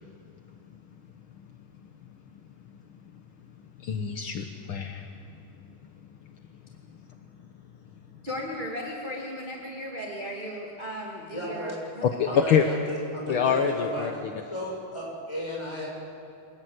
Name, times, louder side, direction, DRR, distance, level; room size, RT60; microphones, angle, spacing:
voice 1, 3.8-5.1 12.2-12.7 13.3-14.3, left 7 dB, 70° left, 4 dB, 1.2 m, -25 dB
voice 2, 8.2-12.0 12.3-12.4, equal, 15° right, -2 dB, 2.3 m, -36 dB
voice 3, 11.3-11.8 12.3-14.1 14.4-15.9, equal, 10° left, -4 dB, 7.5 m, -34 dB
26.5 x 19.0 x 8.1 m, 2.6 s
omnidirectional pair, 3.7 m